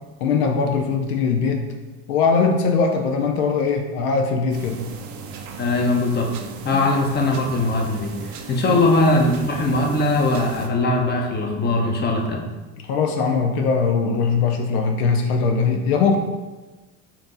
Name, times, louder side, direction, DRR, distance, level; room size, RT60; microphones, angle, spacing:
voice 1, 0.2-1.7 2.1-4.8 8.7-8.8 12.8-16.2, left 5 dB, 80° left, 4 dB, 0.7 m, -21 dB
sound 1, 4.5-10.7, right 5 dB, 40° right, 0.6 m, -37 dB
voice 2, 5.6-6.3 6.6-8.1 8.5-12.4, left 2 dB, 20° left, 1 dB, 0.8 m, -20 dB
4.4 x 2.7 x 3.9 m, 1.2 s
hypercardioid pair, 85°, 45 cm